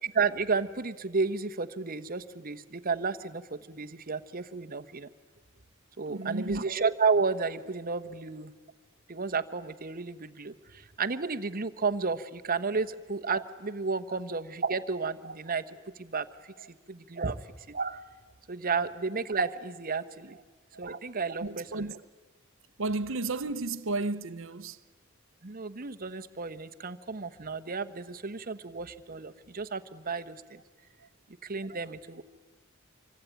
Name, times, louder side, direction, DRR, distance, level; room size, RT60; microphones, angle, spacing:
voice 1, 0.0-5.1 6.0-8.5 9.1-16.3 16.9-18.0 18.5-20.4 20.8-21.9 25.4-30.6 31.4-32.2, right 4 dB, 45° right, 1.0 m, -32 dB
voice 2, 6.1-6.7 14.1-14.2 16.6-16.7 20.3-20.4 21.4-21.9 22.8-24.8 31.0-31.1, right 3 dB, 65° right, 0.8 m, -33 dB
26.0 x 25.0 x 9.2 m
head